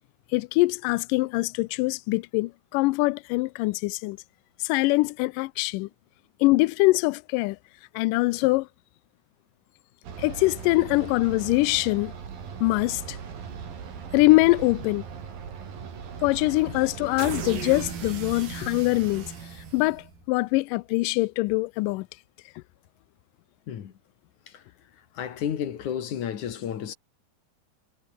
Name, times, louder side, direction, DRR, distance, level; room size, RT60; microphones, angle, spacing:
voice 1, 0.3-4.2 4.6-5.9 6.4-7.6 8.0-8.7 10.2-12.1 12.6-13.2 14.1-15.0 16.2-19.3 19.7-22.1, left 22 dB, 85° left, 1.9 m, -23 dB
sound 1, 10.0-20.3, right 7 dB, 70° right, 5.4 m, -38 dB
voice 2, 25.2-26.9, left 9 dB, 60° left, 2.9 m, -31 dB
omnidirectional pair, 4.3 m